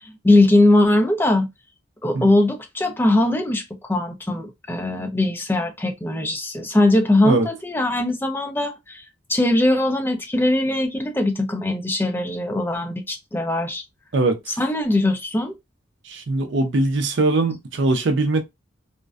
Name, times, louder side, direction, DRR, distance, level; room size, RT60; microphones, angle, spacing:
voice 1, 0.0-1.5 2.0-9.0 9.3-13.8 14.6-15.6, left 1 dB, 10° left, 0.3 m, -20 dB
voice 2, 14.1-14.6 16.1-18.4, right 2 dB, 65° right, 0.5 m, -21 dB
2.5 x 2.1 x 2.3 m
head